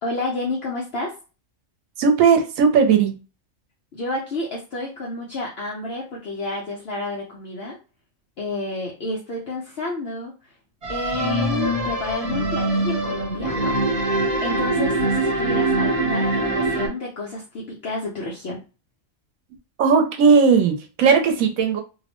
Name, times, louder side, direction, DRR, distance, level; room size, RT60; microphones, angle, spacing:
voice 1, 0.0-1.2 3.9-7.8 8.4-10.3 10.9-14.1 14.4-18.6, left 2 dB, 55° left, 0.8 m, -30 dB
voice 2, 2.0-3.2 19.8-21.8, right 5 dB, 85° right, 1.1 m, -17 dB
sound 1, 10.8-16.9, right 2 dB, 35° right, 0.8 m, -23 dB
2.7 x 2.0 x 2.9 m
omnidirectional pair, 1.4 m